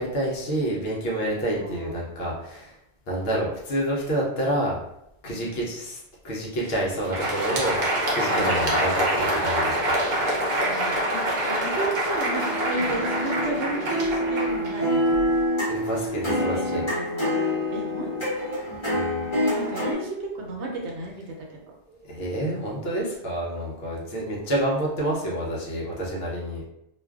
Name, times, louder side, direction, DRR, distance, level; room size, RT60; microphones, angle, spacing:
voice 1, 0.0-2.7 3.1-4.8 5.2-7.8 8.1-10.0 15.7-16.8 18.9-19.3 21.9-26.6, right 1 dB, 60° left, -3 dB, 0.8 m, -28 dB
voice 2, 1.5-2.0 5.3-5.7 6.6-6.8 8.2-8.8 10.7-15.2 16.2-17.4 17.7-18.6 19.5-21.6, right 2 dB, 75° right, -1 dB, 0.9 m, -34 dB
Crowd, 6.9-15.4, right 1 dB, 50° right, 0.6 m, -26 dB
sound 1, 12.2-19.9, equal, 25° left, 0.9 m, -26 dB
2.4 x 2.2 x 2.3 m, 0.81 s
omnidirectional pair, 1.2 m